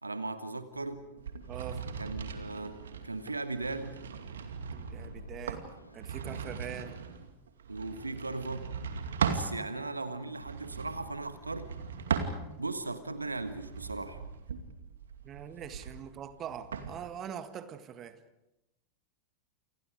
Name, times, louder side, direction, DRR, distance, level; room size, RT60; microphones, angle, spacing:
voice 1, 0.0-1.1 2.0-2.8 3.0-4.0 7.7-8.7 9.2-11.7 12.6-14.2, right 3 dB, 80° right, 11 dB, 1.5 m, -37 dB
sound 1, 0.7-7.4, left 1 dB, 90° left, 2.8 m, -53 dB
sound 2, 1.2-9.5 10.3-12.8 13.3-16.9, right 6 dB, 65° right, 2.4 m, -38 dB
voice 2, 1.5-1.9 4.7-5.6 5.9-7.0 15.2-18.2, right 9 dB, 30° right, 10 dB, 1.8 m, -43 dB
sound 3, 9.1-14.3, left 4 dB, 30° left, 6.9 m, -57 dB
29.0 x 29.0 x 5.1 m, 0.94 s
figure-of-eight pair, 90°, 0 cm